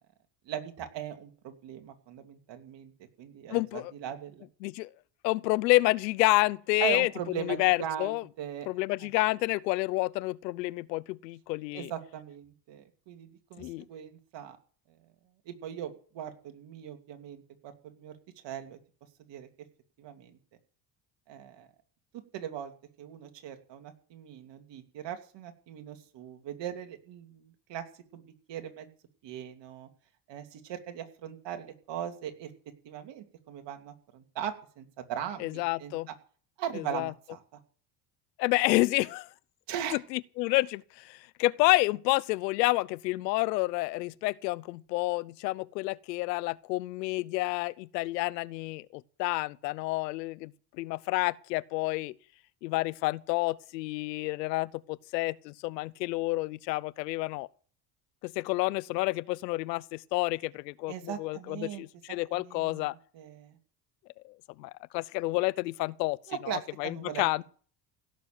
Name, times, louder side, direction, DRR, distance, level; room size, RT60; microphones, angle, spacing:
voice 1, 0.5-2.9 3.2-4.5 6.8-8.7 11.7-14.6 15.5-18.1 18.4-18.8 19.3-19.5 20.0-20.4 21.3-21.7 22.1-22.7 23.0-27.9 28.1-28.2 28.5-28.9 29.2-29.9 30.3-32.5 32.8-35.9 36.6-37.4 39.7-40.0 60.9-61.8 62.3-63.6 66.3-67.2, right 10 dB, 60° right, 2.8 m, -39 dB
voice 2, 3.5-3.9 4.6-4.9 5.2-7.1 7.3-8.2 8.7-11.9 13.6-13.8 35.4-36.1 36.7-37.1 38.4-39.3 39.9-50.5 50.8-52.1 52.6-57.5 58.2-62.9 64.2-66.2 66.4-67.4, left 21 dB, 90° left, 0.7 m, -29 dB
17.0 x 7.0 x 9.2 m
hypercardioid pair, 75°, 48 cm